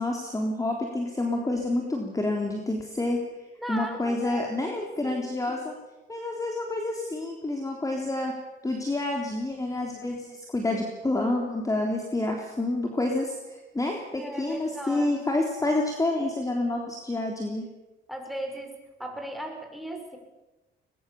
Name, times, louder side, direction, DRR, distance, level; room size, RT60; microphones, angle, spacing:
voice 1, 0.0-3.2 3.7-5.7 6.1-8.3 8.6-17.7, left 2 dB, 15° left, 1 dB, 3.6 m, -28 dB
voice 2, 3.6-5.6 14.1-15.2 18.1-18.7 19.0-20.2, right 1 dB, ahead, 2 dB, 6.3 m, -37 dB
22.0 x 21.5 x 7.3 m, 1.1 s
cardioid pair, 90°, 20 cm